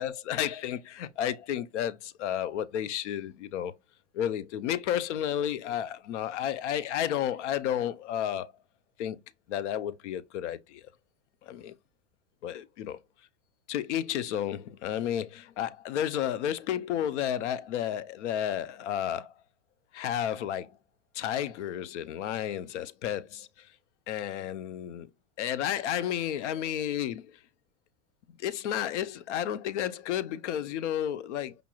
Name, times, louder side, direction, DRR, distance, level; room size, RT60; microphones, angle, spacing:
voice 1, 0.0-3.7 4.1-8.5 9.0-9.2 9.5-10.9 11.4-11.7 12.4-13.0 13.7-19.3 19.9-20.8 21.1-23.7 24.1-25.1 25.4-27.4 28.4-31.6, left 10 dB, 75° left, 0.5 m, -32 dB
5.1 x 2.9 x 2.3 m
supercardioid pair, 165°, 36 cm